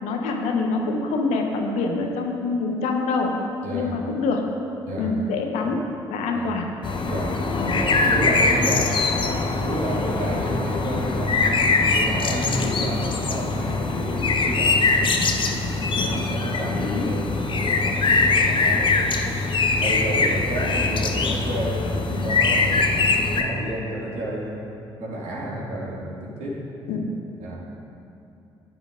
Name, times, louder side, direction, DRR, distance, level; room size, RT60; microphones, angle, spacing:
voice 1, 0.0-3.3 3.7-4.4 5.0-5.8 6.1-6.7 7.5-7.8 12.6-12.8 16.0-16.2 16.5-17.1 22.1-22.3 26.9-27.1, left 3 dB, 65° left, 2 dB, 1.1 m, -26 dB
voice 2, 3.6-4.0 4.9-5.2 6.3-6.5 7.1-19.2 19.5-23.1 23.4-26.6 27.4-27.6, right 1 dB, 60° right, -5 dB, 2.3 m, -31 dB
sound 1, 6.8-23.4, left 3 dB, 40° left, 0.9 m, -22 dB
15.0 x 10.0 x 2.6 m, 2.8 s
figure-of-eight pair, 45°, 13 cm